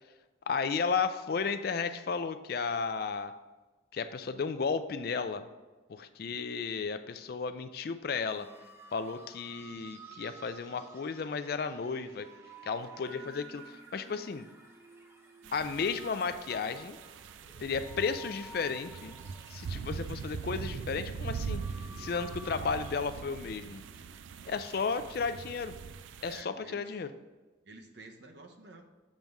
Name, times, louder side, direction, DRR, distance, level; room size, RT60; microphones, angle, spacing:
voice 1, 0.5-3.3 3.9-5.5 5.9-8.5 8.9-12.3 12.6-14.5 15.5-17.0 17.6-19.2 19.5-21.6 22.0-23.8 24.5-25.7 26.2-27.1, left 5 dB, 50° left, 11 dB, 0.3 m, -33 dB
sound 1, 8.2-23.0, right 2 dB, 15° right, 0.6 m, -52 dB
sound 2, 15.4-26.4, right 6 dB, 80° right, 0.4 m, -42 dB
voice 2, 26.2-26.9 27.6-28.8, right 2 dB, 60° right, 3 dB, 0.8 m, -51 dB
7.4 x 3.5 x 5.3 m, 1.2 s
head